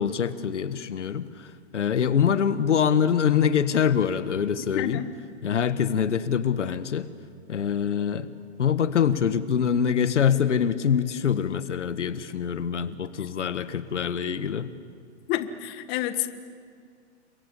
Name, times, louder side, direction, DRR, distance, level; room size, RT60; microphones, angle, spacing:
voice 1, 0.0-5.0 5.4-7.1 7.5-8.3 8.6-14.7, left 8 dB, 90° left, 12 dB, 1.6 m, -24 dB
voice 2, 4.7-5.1 15.3-16.3, left 13 dB, 30° left, 10 dB, 1.5 m, -29 dB
29.5 x 24.0 x 8.4 m, 2.1 s
hypercardioid pair, 135°, 35 cm